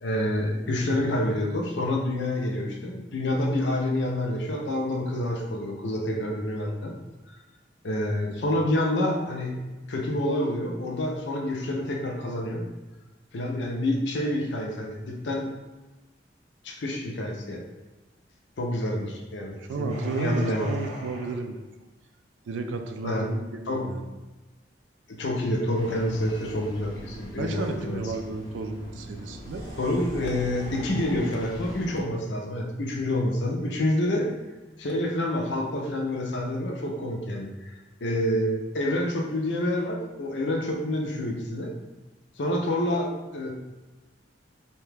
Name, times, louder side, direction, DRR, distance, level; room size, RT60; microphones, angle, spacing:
voice 1, 0.0-6.9 7.8-9.6 9.9-12.6 13.3-15.5 16.6-17.6 18.6-20.7 23.0-23.3 23.7-23.8 25.1-28.0 29.8-34.3 34.8-37.8 38.0-41.7 42.4-43.5, left 1 dB, 70° left, 1 dB, 0.5 m, -28 dB
voice 2, 19.6-21.6 22.5-24.1 27.4-29.7, right 3 dB, 85° right, 6 dB, 0.3 m, -33 dB
sound 1, 19.9-21.4 27.5-27.8 29.4-31.5, right 1 dB, 40° right, 0.7 m, -41 dB
Engine starting, 25.7-32.0, equal, 20° left, 0.5 m, -41 dB
2.8 x 2.2 x 3.3 m, 1.1 s
head